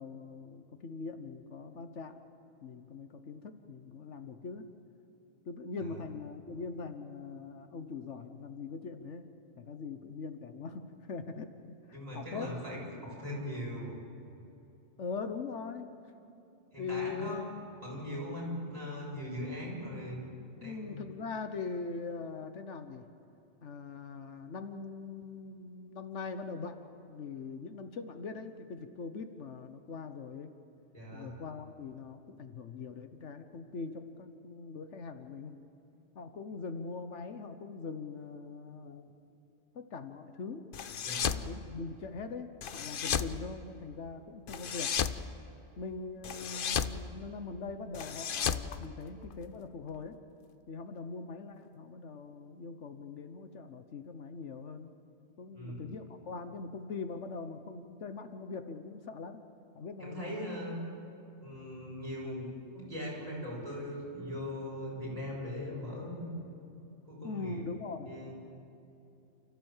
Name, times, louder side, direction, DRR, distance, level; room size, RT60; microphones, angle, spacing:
voice 1, 0.0-2.2 2.6-4.6 5.5-9.3 9.6-12.5 15.0-15.9 16.8-17.5 20.6-23.1 23.6-26.8 27.1-30.5 31.1-35.6 36.1-39.2 39.7-40.7 41.3-44.9 45.8-50.2 50.7-54.9 55.4-59.4 59.7-60.5 62.2-62.3 67.2-68.3, left 4 dB, 75° left, 8 dB, 1.3 m, -42 dB
voice 2, 11.9-13.9 16.7-17.5 17.8-20.2 20.6-21.0 30.9-31.3 41.0-41.4 55.5-55.9 60.0-60.8 61.4-62.5 62.7-66.3 67.1-67.6 68.1-68.3, equal, 30° right, -5 dB, 6.9 m, -40 dB
sound 1, 40.7-41.5 42.6-43.3 44.5-45.2 46.2-47.0 47.9-49.5, left 8 dB, 55° left, 0.8 m, -33 dB
29.0 x 14.0 x 7.3 m, 2.8 s
omnidirectional pair, 1.2 m